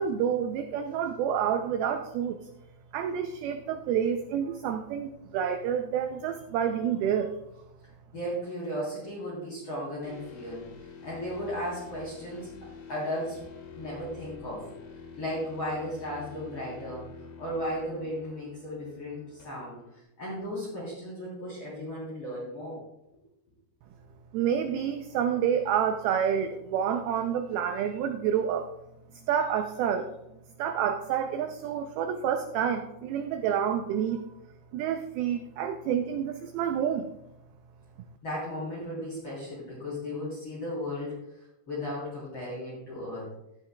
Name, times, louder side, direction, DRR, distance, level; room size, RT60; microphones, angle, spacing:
voice 1, 0.0-2.5 2.9-7.3 24.3-28.7 29.3-30.1 30.6-34.2 34.7-37.1, right 8 dB, 80° right, 6 dB, 2.2 m, -28 dB
voice 2, 8.1-10.7 11.0-12.5 12.9-13.4 13.7-14.8 15.2-17.1 17.4-19.8 20.2-22.8 29.1-29.2 38.2-41.2 41.7-43.3, equal, 35° left, -8 dB, 4.0 m, -35 dB
sound 1, 10.0-20.0, left 5 dB, 85° left, 3.8 m, -47 dB
15.5 x 10.5 x 2.3 m, 0.86 s
omnidirectional pair, 4.8 m